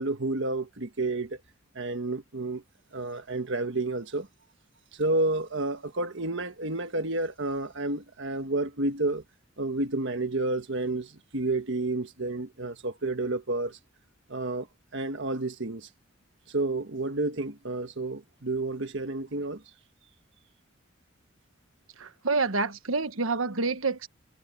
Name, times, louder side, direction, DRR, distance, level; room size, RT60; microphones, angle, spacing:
voice 1, 0.0-1.4 1.7-2.6 2.9-4.3 4.9-9.2 9.6-13.8 14.3-14.7 14.9-15.9 16.5-19.6, right 2 dB, 65° right, 1.6 m, -30 dB
voice 2, 22.0-24.1, right 3 dB, 90° right, 1.4 m, -28 dB
head